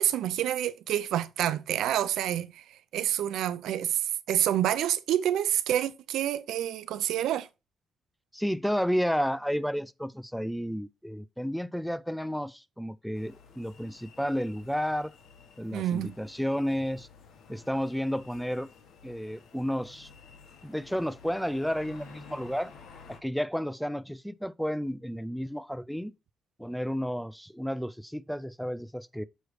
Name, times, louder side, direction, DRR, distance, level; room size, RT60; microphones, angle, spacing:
voice 1, 0.0-2.6 2.9-7.5 15.7-16.2, right 11 dB, 85° right, 0.5 m, -28 dB
voice 2, 8.3-15.1 15.6-17.1 17.5-18.7 19.0-20.1 20.6-22.7 23.1-26.1 26.6-29.2, equal, ahead, 0.4 m, -31 dB
sound 1, 13.1-23.2, left 6 dB, 70° left, 1.3 m, -53 dB
6.4 x 3.2 x 4.6 m
cardioid pair, 90°, 0 cm